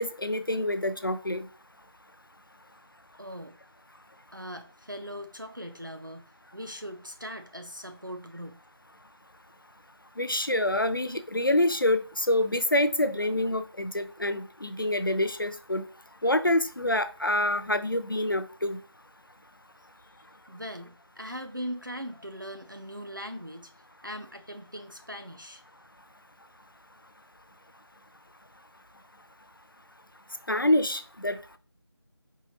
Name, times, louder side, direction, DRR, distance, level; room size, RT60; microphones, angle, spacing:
voice 1, 0.0-1.5 10.2-15.8 16.2-18.8 30.5-31.6, left 1 dB, 50° left, 0.4 m, -26 dB
voice 2, 3.2-3.6 4.3-8.6 20.0-23.7 24.0-25.6, equal, 50° right, 0.4 m, -40 dB
4.6 x 3.9 x 2.7 m
figure-of-eight pair, 180°, 14 cm